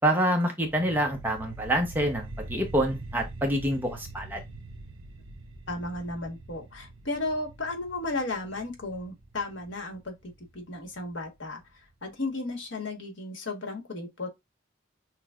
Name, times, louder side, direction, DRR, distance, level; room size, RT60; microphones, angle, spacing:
voice 1, 0.0-4.4, right 1 dB, 10° right, 0.7 m, -26 dB
sound 1, 0.6-11.6, right 2 dB, 85° right, 0.6 m, -44 dB
voice 2, 5.7-11.6 12.0-14.3, left 2 dB, 75° left, 1.3 m, -34 dB
5.9 x 2.2 x 2.4 m
head